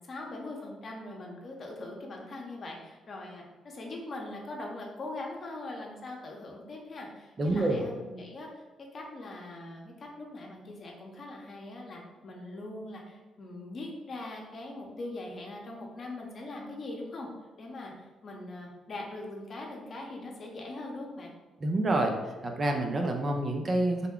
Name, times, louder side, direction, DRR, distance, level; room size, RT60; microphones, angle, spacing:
voice 1, 0.0-8.6 8.9-17.3 17.6-17.9 18.2-21.3, left 2 dB, 50° left, 0 dB, 0.8 m, -41 dB
voice 2, 7.4-7.8 21.6-22.1 22.4-24.1, right 2 dB, 40° right, 3 dB, 0.6 m, -27 dB
3.5 x 2.2 x 3.6 m, 1.3 s
supercardioid pair, 65°, 0 cm